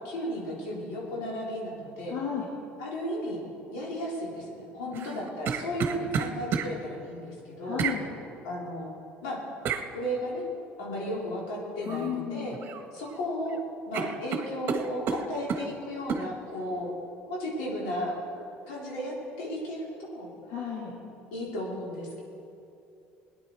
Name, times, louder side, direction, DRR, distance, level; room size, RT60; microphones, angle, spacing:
voice 1, 0.0-2.1 2.8-3.4 3.7-7.8 8.4-8.9 9.2-9.4 9.9-10.4 10.8-12.6 12.9-13.6 13.9-16.9 17.3-18.2 18.7-20.3 21.3-22.2, equal, 85° left, -4 dB, 3.6 m, -34 dB
voice 2, 2.1-2.5 4.9-5.2 7.6-8.1 11.9-12.6 20.5-21.0, left 8 dB, 65° left, -3 dB, 2.3 m, -34 dB
sound 1, 4.9-6.7 7.8-8.0 9.7-9.9 11.9-12.1 12.5-13.2 13.5-13.6 13.9-15.7 16.1-16.3, right 6 dB, 50° right, 1.1 m, -31 dB
18.5 x 10.0 x 4.6 m, 2.7 s
supercardioid pair, 95°, 5 cm